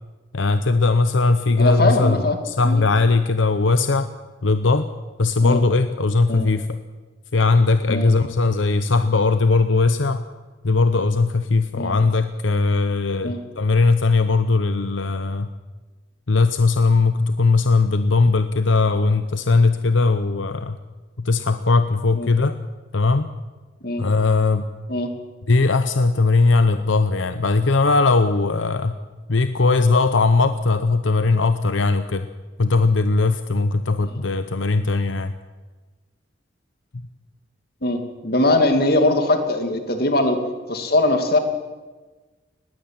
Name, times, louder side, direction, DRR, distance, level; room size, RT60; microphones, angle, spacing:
voice 1, 0.3-2.2 2.4-4.1 4.4-4.9 5.2-6.8 7.3-10.2 10.6-15.5 16.3-20.8 21.2-22.6 22.9-23.3 24.0-24.7 25.5-28.9 29.3-32.3 32.6-35.4, left 3 dB, 85° left, 10 dB, 0.8 m, -19 dB
voice 2, 1.6-2.4 2.6-2.8 5.4-5.6 6.3-6.5 7.9-8.1 11.7-11.9 13.2-13.4 22.1-22.3 23.8-24.0 24.9-25.1 37.8-40.4 40.7-41.4, left 2 dB, 55° left, 6 dB, 2.5 m, -20 dB
20.0 x 16.0 x 8.9 m, 1.3 s
head